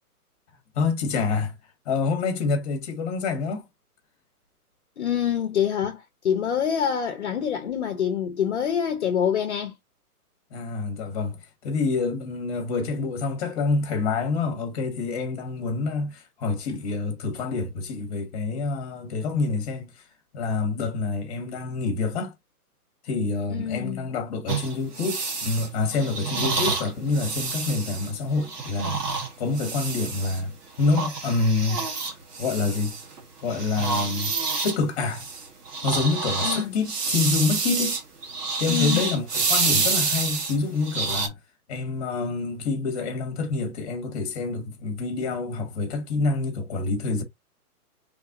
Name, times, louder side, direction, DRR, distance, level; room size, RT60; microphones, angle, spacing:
voice 1, 0.7-1.5 1.8-3.7 10.5-20.0 20.3-22.3 23.0-30.5 30.8-31.8 32.4-32.9 33.4-34.3 34.6-35.3 35.8-38.0 38.6-41.3 41.7-47.2, left 4 dB, 25° left, 1.2 m, -27 dB
voice 2, 5.0-9.7 23.5-24.1 36.4-36.7 38.7-39.1, left 8 dB, 50° left, 0.8 m, -26 dB
sound 1, 24.5-30.4 30.8-33.2 33.5-41.3, right 4 dB, 80° right, 1.7 m, -28 dB
4.0 x 3.4 x 2.6 m
hypercardioid pair, 165°, 46 cm